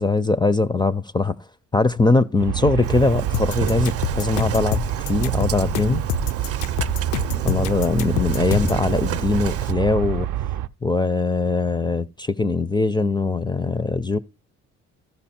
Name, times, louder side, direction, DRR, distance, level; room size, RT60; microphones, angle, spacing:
voice 1, 0.0-1.4 1.7-6.0 7.4-10.3 10.8-14.2, left 3 dB, 15° left, 0.4 m, -21 dB
Aircraft, 2.4-10.7, right 12 dB, 90° right, 0.5 m, -27 dB
Engine starting, 2.8-9.7, right 9 dB, 50° right, 0.6 m, -30 dB
sound 1, 3.3-8.8, left 12 dB, 75° left, 0.5 m, -28 dB
13.5 x 5.3 x 4.2 m
cardioid pair, 90°, 30 cm